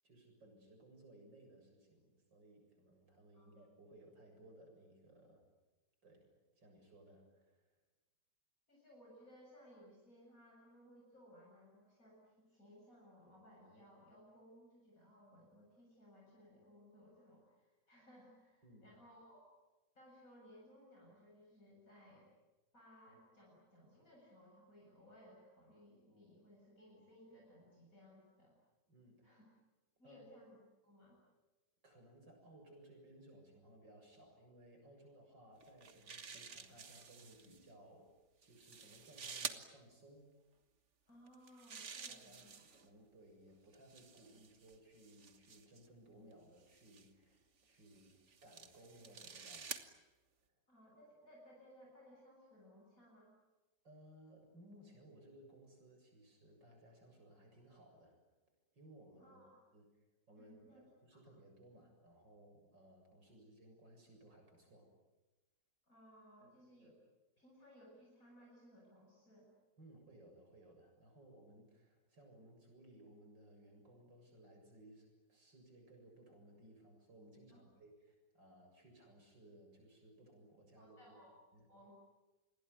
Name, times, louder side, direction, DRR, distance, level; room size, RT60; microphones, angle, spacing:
voice 1, 0.0-5.4 6.0-7.7 18.6-18.9 28.9-29.3 30.0-30.2 31.8-38.1 38.4-40.3 42.1-49.7 53.8-58.2 58.7-59.4 59.7-59.9 60.3-64.9 69.8-81.0 81.5-81.7, right 1 dB, 85° right, 3 dB, 8.0 m, -61 dB
voice 2, 8.7-19.5 19.9-22.3 22.7-28.5 29.2-29.5 30.0-31.2 41.1-42.6 50.7-53.3 59.2-59.5 60.4-60.8 61.1-61.2 65.8-67.0 67.4-69.5 77.5-77.6 80.8-81.3 81.7-81.9, equal, 50° left, -3 dB, 7.9 m, -62 dB
sound 1, 35.6-37.6 38.4-39.6 41.3-42.9 43.7-45.9 46.7-47.1 47.9-49.9, right 5 dB, 40° right, 1.7 m, -50 dB
28.5 x 21.5 x 9.6 m, 1.1 s
omnidirectional pair, 1.9 m